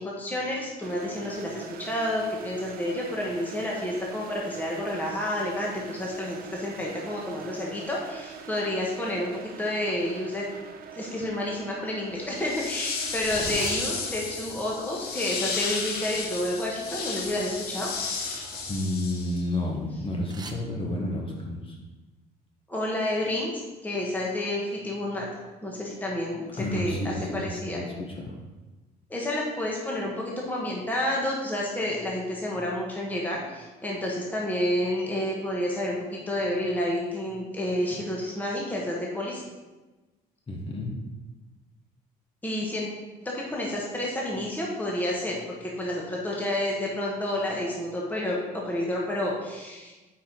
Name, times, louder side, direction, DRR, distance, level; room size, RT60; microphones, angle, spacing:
voice 1, 0.0-10.4 10.9-17.9 22.7-23.5 23.8-25.3 25.6-27.1 27.4-27.8 29.1-39.4 42.4-42.9 43.3-49.9, left 1 dB, 10° left, -3 dB, 1.3 m, -30 dB
sound 1, 0.8-17.7, right 7 dB, 60° right, 0.7 m, -44 dB
sound 2, 10.5-10.6 10.9-11.3 12.0-20.5, right 3 dB, 25° right, 0.8 m, -45 dB
sound 3, 12.3-19.6, left 4 dB, 65° left, 1.1 m, -33 dB
voice 2, 18.7-21.8 26.6-28.4 40.5-40.9, left 1 dB, 30° left, 0 dB, 1.4 m, -31 dB
8.1 x 4.9 x 3.9 m, 1.2 s
cardioid pair, 110°, 17 cm